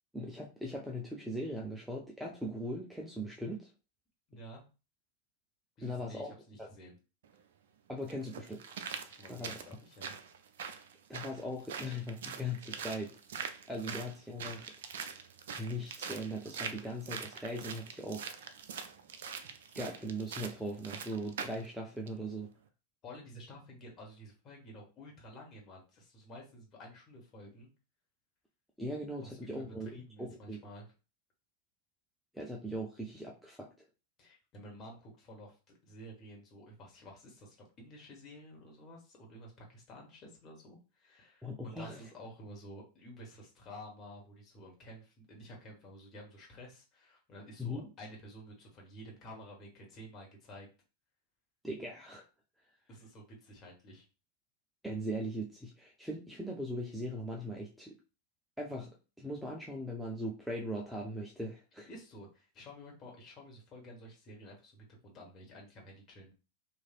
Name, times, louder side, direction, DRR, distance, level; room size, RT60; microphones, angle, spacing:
voice 1, 0.1-3.7 5.8-6.3 6.6-6.7 7.9-8.6 9.3-9.5 11.1-13.1 13.7-14.7 15.6-18.4 19.7-22.5 28.8-29.9 30.2-30.6 32.3-33.7 41.4-42.0 47.6-47.8 51.6-52.2 54.8-58.0 58.6-61.9, equal, ahead, -1 dB, 0.5 m, -39 dB
voice 2, 4.3-4.6 5.8-6.9 9.1-10.2 23.0-27.7 29.2-30.9 34.2-35.5 35.8-50.7 52.9-54.1 61.9-66.3, equal, 30° left, -1 dB, 1.2 m, -51 dB
sound 1, 7.2-7.3 8.1-21.7 22.1-22.2, right 6 dB, 60° right, 0.4 m, -43 dB
3.1 x 2.6 x 2.4 m, 0.32 s
figure-of-eight pair, 90°, 0 cm